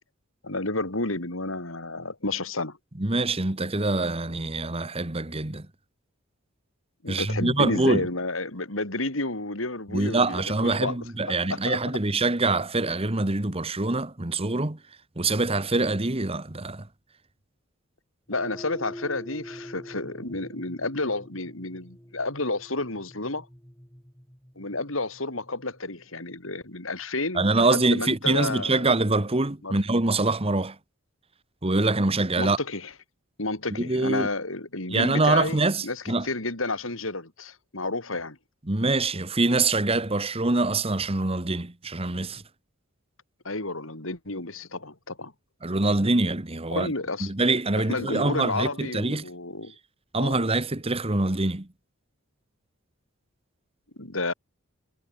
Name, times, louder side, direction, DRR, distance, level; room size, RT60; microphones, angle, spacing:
voice 1, 0.4-2.8 7.0-11.0 11.2-11.8 18.3-23.5 24.6-28.8 29.6-29.7 32.4-32.9 33.4-38.4 43.4-45.3 46.7-47.3 47.9-49.7 50.2-50.4 54.0-54.3, left 2 dB, 75° left, 4.8 m, -31 dB
voice 2, 3.0-5.7 7.1-8.1 9.9-14.8 15.2-16.9 27.3-30.8 31.6-32.6 33.8-34.3 34.9-36.3 38.7-42.4 45.6-46.9 47.2-49.2 50.1-51.7, right 2 dB, 30° right, 1.4 m, -24 dB
sound 1, 18.3-26.8, equal, 10° left, 4.1 m, -45 dB
head